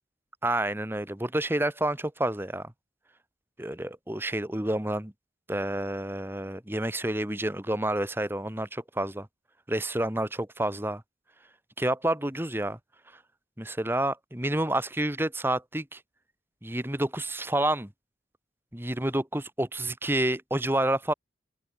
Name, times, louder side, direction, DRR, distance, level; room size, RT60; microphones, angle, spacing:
voice 1, 0.4-2.7 3.6-5.1 5.5-9.3 9.7-11.0 11.8-12.8 13.6-16.0 16.6-17.9 18.7-21.1, right 1 dB, 10° right, 1.4 m, -29 dB
open air
head